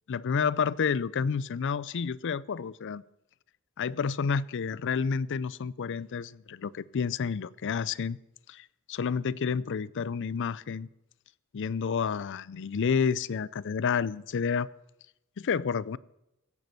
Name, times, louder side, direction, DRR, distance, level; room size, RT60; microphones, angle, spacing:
voice 1, 0.1-3.0 3.8-8.2 8.5-10.9 11.5-14.7 15.4-16.0, left 6 dB, 55° left, 0.4 m, -30 dB
16.0 x 10.5 x 6.7 m
head